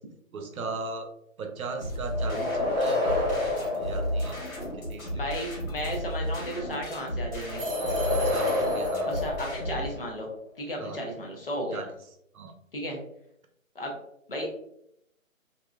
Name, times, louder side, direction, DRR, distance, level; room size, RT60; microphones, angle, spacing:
voice 1, 0.3-1.1 1.4-3.1 3.4-4.4 4.7-5.2 8.1-9.1 10.8-11.0 11.7-11.9 12.3-12.5, right 3 dB, 85° right, 5 dB, 0.7 m, -37 dB
sound 1, 1.8-9.9, equal, 75° left, 1.1 m, -34 dB
sound 2, 2.1-4.8 7.4-10.2, left 2 dB, 15° left, 0.9 m, -29 dB
voice 2, 5.1-7.6 9.0-10.3 10.6-11.8 12.7-13.0 13.7-14.0 14.3-14.5, equal, 45° left, -1 dB, 0.6 m, -34 dB
sound 3, 7.6-9.3, right 4 dB, 45° right, 0.6 m, -41 dB
2.6 x 2.1 x 2.3 m, 0.76 s
hypercardioid pair, 165°, 41 cm